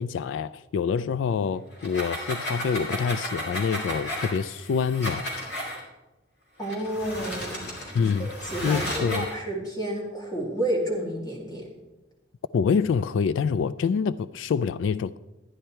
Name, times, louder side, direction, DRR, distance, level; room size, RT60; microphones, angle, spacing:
voice 1, 0.0-5.3 7.9-8.3 8.6-9.3 12.5-15.2, left 6 dB, 80° left, 0.3 m, -26 dB
sound 1, 1.7-5.8 6.6-9.4, equal, 55° left, 2.7 m, -34 dB
voice 2, 6.6-7.8 8.2-11.7, right 1 dB, 20° left, 2.3 m, -30 dB
12.0 x 9.5 x 4.4 m
head